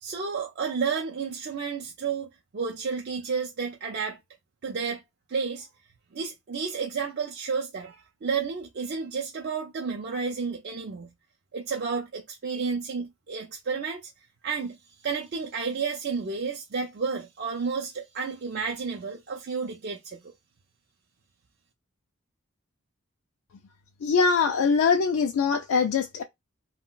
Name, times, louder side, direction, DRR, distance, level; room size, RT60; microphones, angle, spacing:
voice 1, 0.0-2.3 2.5-4.2 4.6-5.0 5.3-5.7 6.1-11.1 11.5-14.1 14.4-20.3, right 5 dB, 50° right, 0.5 m, -31 dB
voice 2, 24.0-26.2, left 5 dB, 90° left, 0.4 m, -22 dB
2.3 x 2.2 x 3.7 m
head